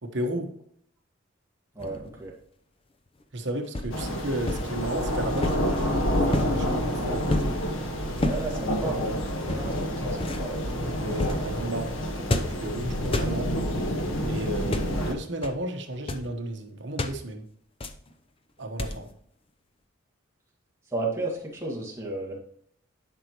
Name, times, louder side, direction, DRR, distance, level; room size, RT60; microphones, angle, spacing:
voice 1, 0.0-0.5 3.3-7.6 10.5-10.6 10.9-13.5 14.3-17.4 18.6-19.1, right 1 dB, 60° right, 4 dB, 1.1 m, -33 dB
sound 1, 1.8-2.2 3.7-4.0 4.4-4.7 5.4-5.8 6.3-6.6 7.3-7.6 8.2-8.5 9.4-9.8 10.2-10.5 11.1-11.5 12.3-12.7 13.1-13.4 14.6-15.0 15.4-15.6 15.9-16.3 17.0-17.2 17.8-18.1 18.8-19.1, left 1 dB, 25° left, 0.6 m, -30 dB
voice 2, 1.8-2.3 8.2-9.2 9.4-10.7 20.9-22.4, right 2 dB, 15° right, -3 dB, 1.8 m, -33 dB
sound 2, 3.9-15.1, equal, 85° left, 1.3 m, -28 dB
11.0 x 5.5 x 3.0 m, 0.67 s
head